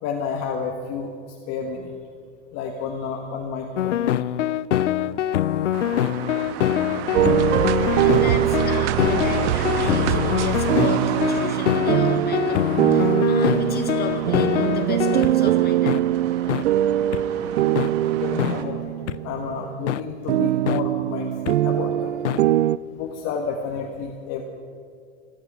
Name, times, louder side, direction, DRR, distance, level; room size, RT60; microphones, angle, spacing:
voice 1, 0.0-1.1 1.5-1.9 2.5-4.1 18.2-18.9 19.2-22.1 22.9-24.4, left 6 dB, 45° left, 2 dB, 1.5 m, -30 dB
sound 1, 3.8-15.3 15.9-16.0 16.5-16.6 17.1-17.2 17.8-17.9 18.4-18.5 19.1-19.2 19.9-20.0 20.7-20.8 21.5-21.6 22.2-22.4, left 11 dB, 90° left, 0.5 m, -24 dB
sound 2, 5.7-18.6, right 7 dB, 55° right, 1.5 m, -32 dB
sound 3, 7.1-19.8 20.3-22.8, right 13 dB, 80° right, 0.5 m, -22 dB
voice 2, 7.9-16.0, left 5 dB, 25° left, 3 dB, 2.5 m, -33 dB
27.0 x 10.0 x 5.0 m, 2.3 s
hypercardioid pair, 95°, 35 cm